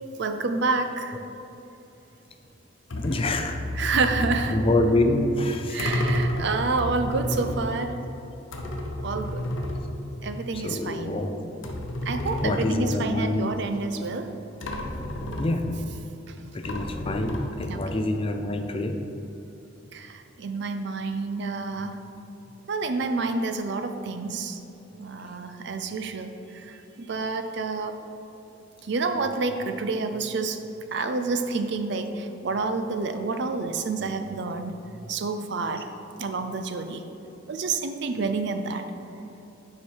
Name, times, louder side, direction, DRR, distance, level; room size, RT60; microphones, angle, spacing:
voice 1, 0.2-1.2 3.7-4.6 5.7-8.0 9.0-9.5 10.2-11.1 12.1-14.3 17.7-17.8 19.9-22.0 22.7-24.6 25.0-28.0 28.8-30.6 30.9-34.8 35.1-35.9 36.2-37.0 37.5-38.8, right 3 dB, 60° right, 8 dB, 0.5 m, -28 dB
sound 1, 2.9-10.7 11.0-11.1 11.6-13.3 14.2-14.3 14.6-16.0 16.6-17.9, left 1 dB, 90° left, 0.8 m, -31 dB
voice 2, 3.0-3.6 4.5-5.8 10.5-11.3 12.4-13.5 15.4-15.9 16.5-19.0, left 2 dB, 30° left, 5 dB, 0.5 m, -26 dB
7.0 x 4.9 x 4.6 m, 3.0 s
head